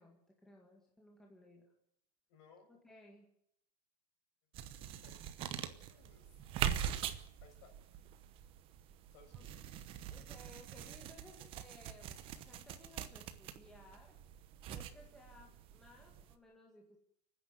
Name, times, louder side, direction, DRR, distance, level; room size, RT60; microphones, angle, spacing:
voice 1, 0.0-1.7 2.7-3.3 9.3-9.5 10.1-14.2 14.7-17.0, left 1 dB, ahead, -1 dB, 1.9 m, -60 dB
voice 2, 2.3-2.7 4.5-4.7 5.0-6.4 7.4-7.7 9.1-9.6, left 5 dB, 45° left, 3 dB, 6.2 m, -63 dB
sound 1, 4.5-16.3, right 10 dB, 25° right, 1.0 m, -43 dB
29.5 x 10.0 x 9.1 m, 0.73 s
supercardioid pair, 170°, 21 cm